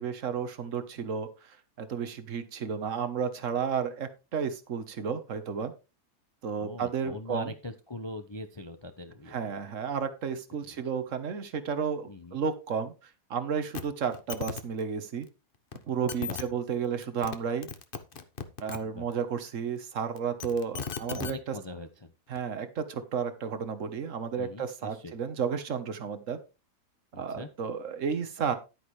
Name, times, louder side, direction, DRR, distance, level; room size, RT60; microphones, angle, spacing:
voice 1, 0.0-5.7 6.4-7.5 9.3-15.3 15.9-17.7 18.6-21.5 22.3-26.4 27.1-28.5, right 6 dB, 50° right, 10 dB, 1.5 m, -32 dB
voice 2, 6.6-9.5 10.6-10.8 12.1-12.4 16.2-16.4 18.8-19.1 21.1-22.1 24.4-25.1 27.1-27.5, left 1 dB, 25° left, 7 dB, 0.6 m, -42 dB
sound 1, 13.7-13.8 14.1-14.6 15.7-15.8 16.1-16.4 17.0-17.4 17.6-18.8 20.2-21.3 22.4-22.5, left 6 dB, 40° left, 1.0 m, -36 dB
11.0 x 9.6 x 3.2 m, 0.29 s
omnidirectional pair, 1.8 m